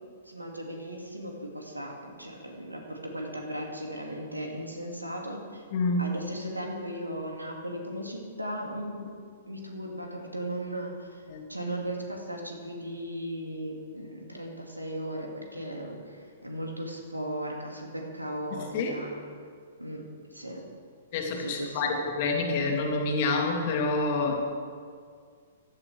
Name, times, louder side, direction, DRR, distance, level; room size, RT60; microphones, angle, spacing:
voice 1, 0.2-5.6 6.0-9.2 9.5-11.2 11.5-19.2 19.8-20.0 20.3-20.6 21.4-22.0, right 1 dB, 90° right, 0 dB, 2.4 m, -37 dB
voice 2, 5.7-6.2 11.3-11.4 18.5-19.0 21.1-24.3, left 3 dB, 40° left, 1 dB, 2.2 m, -28 dB
15.5 x 12.0 x 3.5 m, 2.1 s
figure-of-eight pair, 115°, 0 cm